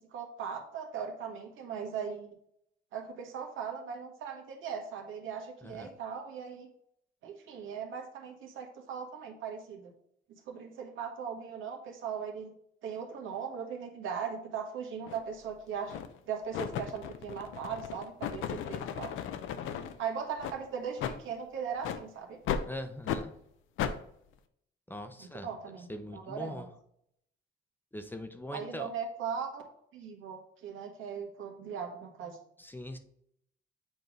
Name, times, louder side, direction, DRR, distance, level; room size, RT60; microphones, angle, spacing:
voice 1, 0.1-2.3 2.9-6.7 7.2-9.9 10.5-12.5 12.8-15.9 16.3-19.2 20.0-22.4 25.2-25.9 26.1-26.7 28.5-29.6 29.9-32.4, right 7 dB, 85° right, 2 dB, 1.4 m, -39 dB
sound 1, 15.1-15.2 15.9-16.2 16.5-19.9 20.4-20.6 21.0-21.2 21.8-22.0 22.5-22.7 23.1-23.2 23.8-24.0, left 8 dB, 90° left, 0.6 m, -35 dB
voice 2, 22.6-23.3 24.9-25.5 25.9-26.7 27.9-28.9 32.6-33.0, left 1 dB, 10° left, 8 dB, 0.7 m, -41 dB
8.0 x 3.2 x 5.3 m, 0.71 s
cardioid pair, 90°, 20 cm